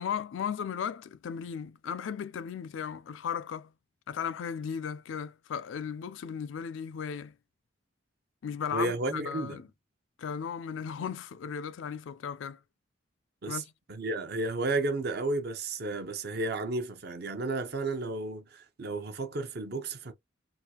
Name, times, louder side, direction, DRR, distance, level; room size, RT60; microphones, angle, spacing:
voice 1, 0.0-3.7 4.1-7.3 8.4-9.7 10.2-12.6 13.5-13.7, left 7 dB, 85° left, 0.4 m, -36 dB
voice 2, 8.7-9.6 13.4-13.6 13.9-20.1, right 2 dB, 55° right, 0.7 m, -32 dB
3.6 x 2.4 x 2.8 m
head